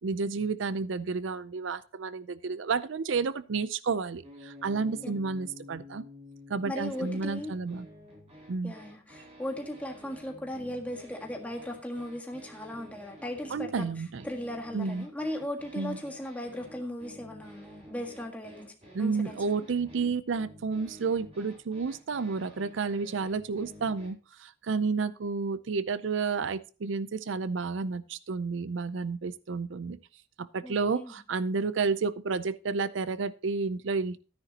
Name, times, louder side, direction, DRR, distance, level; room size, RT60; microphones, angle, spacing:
voice 1, 0.0-6.0 6.5-7.9 8.5-8.7 13.5-14.2 14.7-15.1 15.7-16.0 18.9-30.0 30.4-34.2, right 4 dB, 80° right, 16 dB, 0.5 m, -31 dB
sound 1, 4.2-24.1, left 1 dB, 35° right, 4.3 m, -51 dB
voice 2, 6.7-7.6 8.6-13.9 14.2-18.7 19.0-19.4 30.6-31.1, left 1 dB, 10° left, 1 dB, 1.7 m, -37 dB
13.0 x 9.9 x 2.9 m, 0.35 s
head